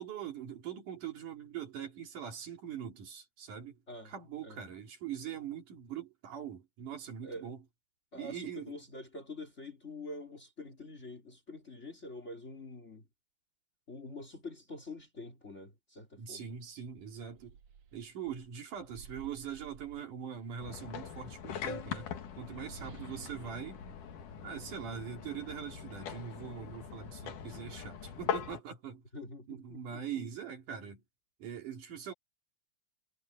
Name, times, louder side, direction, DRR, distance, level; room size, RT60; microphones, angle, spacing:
voice 1, 0.0-3.8 4.1-7.6 8.1-8.7 16.2-17.6 17.9-22.1 22.4-23.8 24.4-29.0 29.5-31.0 31.4-32.1, right 8 dB, 80° right, 4.3 m, -42 dB
voice 2, 7.2-7.5 8.1-13.0 13.9-16.6 29.1-30.2, left 2 dB, 25° left, 2.7 m, -46 dB
sound 1, 16.5-16.6 16.9-20.6 21.5-25.2, right 6 dB, 60° right, 2.8 m, -55 dB
sound 2, 20.6-28.6, left 8 dB, 85° left, 3.4 m, -41 dB
omnidirectional pair, 3.5 m